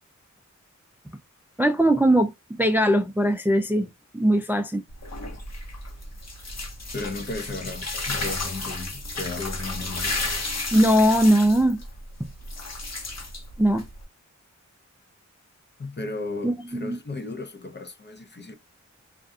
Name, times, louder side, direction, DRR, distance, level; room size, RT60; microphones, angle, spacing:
voice 1, 1.6-3.9 4.1-4.8 10.7-11.8 13.6-13.9 16.4-17.0, equal, 5° right, 0.4 m, -20 dB
sound 1, 4.9-14.0, left 2 dB, 60° left, 1.0 m, -33 dB
voice 2, 6.9-10.2 15.8-18.5, left 3 dB, 35° left, 0.6 m, -35 dB
2.5 x 2.2 x 2.6 m
wide cardioid pair, 50°, 31 cm